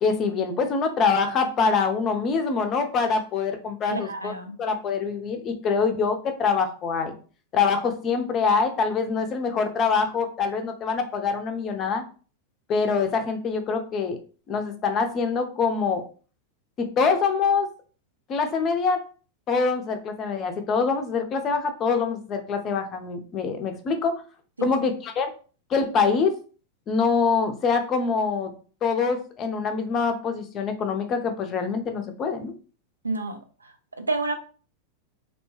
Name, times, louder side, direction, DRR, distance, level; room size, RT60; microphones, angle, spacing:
voice 1, 0.0-4.3 4.6-7.2 7.5-12.0 12.7-14.2 14.5-16.0 16.8-17.7 18.3-19.0 19.5-24.1 24.6-25.3 25.7-26.3 26.9-28.5 28.8-32.5, left 5 dB, 30° left, 6 dB, 0.5 m, -24 dB
voice 2, 3.9-4.6 24.6-24.7 33.0-34.3, right 3 dB, 80° right, 7 dB, 0.5 m, -30 dB
2.7 x 2.2 x 3.0 m, 0.38 s
figure-of-eight pair, 90°, 0 cm